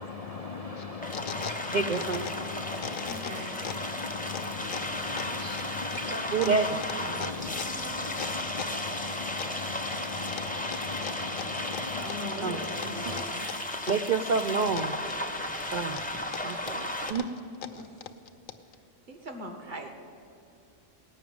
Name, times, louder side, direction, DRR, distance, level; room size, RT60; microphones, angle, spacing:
voice 1, 0.0-13.2, left 4 dB, 60° left, 5 dB, 0.4 m, -39 dB
sound 1, 0.8-2.5 2.8-3.9 4.3-8.9 9.4-10.0 10.3-12.4 12.8-14.1 14.4-15.4 15.8-18.8, left 9 dB, 80° left, 1.1 m, -40 dB
sound 2, 1.0-17.1, left 1 dB, 10° left, 0.7 m, -35 dB
voice 2, 1.7-2.3 6.3-6.8 12.4-12.9 13.9-14.9 15.7-16.0 16.4-17.2, right 4 dB, 60° right, 5 dB, 0.5 m, -28 dB
voice 3, 3.1-3.8 5.9-8.0 11.9-13.5 17.7-18.0 19.1-19.9, equal, 35° right, 3 dB, 1.5 m, -42 dB
18.0 x 6.0 x 9.3 m, 2.6 s
omnidirectional pair, 1.4 m